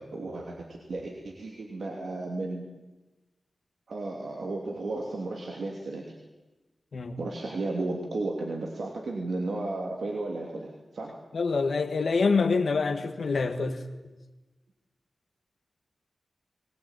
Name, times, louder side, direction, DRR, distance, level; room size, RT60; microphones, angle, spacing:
voice 1, 0.0-2.6 3.9-6.1 7.2-11.1, right 2 dB, 80° right, 2.8 m, -34 dB
voice 2, 11.3-13.8, left 4 dB, 80° left, 1.6 m, -26 dB
21.5 x 19.0 x 9.0 m
cardioid pair, 60°, 0 cm